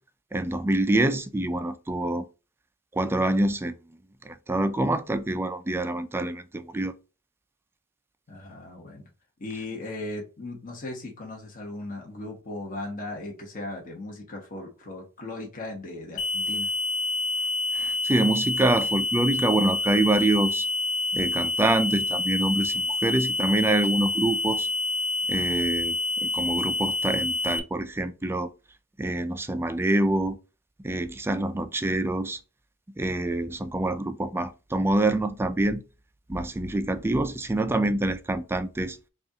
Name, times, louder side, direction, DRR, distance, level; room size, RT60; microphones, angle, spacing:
voice 1, 0.3-2.2 2.9-3.8 4.2-6.9 17.7-20.7 21.1-24.7 25.3-28.5 29.0-30.4 30.8-32.4 33.0-35.8 36.3-39.0, right 2 dB, 10° right, 0.3 m, -26 dB
voice 2, 8.3-9.1 9.4-16.7, left 2 dB, 40° left, 1.0 m, -37 dB
sound 1, 16.2-27.6, left 2 dB, 80° left, 0.5 m, -27 dB
5.2 x 2.4 x 2.7 m
head